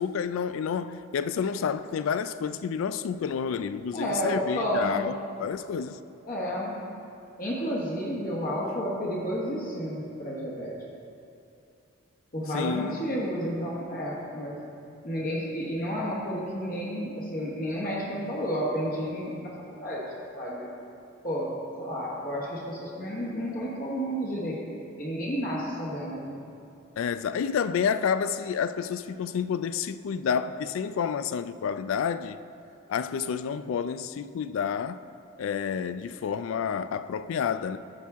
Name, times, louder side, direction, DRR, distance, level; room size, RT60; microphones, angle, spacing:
voice 1, 0.0-6.0 12.5-13.0 27.0-32.4 32.9-35.0 35.4-37.8, left 7 dB, 75° left, 0.3 m, -29 dB
voice 2, 3.9-5.1 6.2-6.9 7.4-10.7 12.3-14.6 15.0-20.0 20.3-20.7 21.2-24.6 25.0-26.4, equal, 45° left, 1.2 m, -31 dB
12.5 x 6.1 x 3.5 m
head